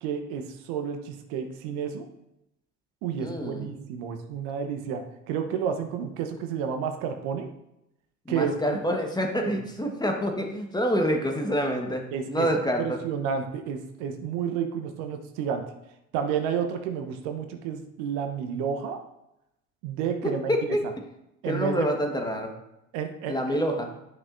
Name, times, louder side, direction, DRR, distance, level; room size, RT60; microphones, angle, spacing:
voice 1, 0.0-2.1 3.0-7.5 8.3-8.8 9.4-9.6 12.1-12.5 12.8-15.6 16.1-19.0 19.8-20.5 21.4-21.9 22.9-23.4, right 7 dB, 60° right, 6 dB, 1.1 m, -30 dB
voice 2, 3.2-3.7 8.2-13.0 20.2-20.8 21.4-22.5 23.3-23.9, equal, 10° left, 3 dB, 1.4 m, -27 dB
11.0 x 6.0 x 2.6 m, 0.85 s
hypercardioid pair, 70°, 44 cm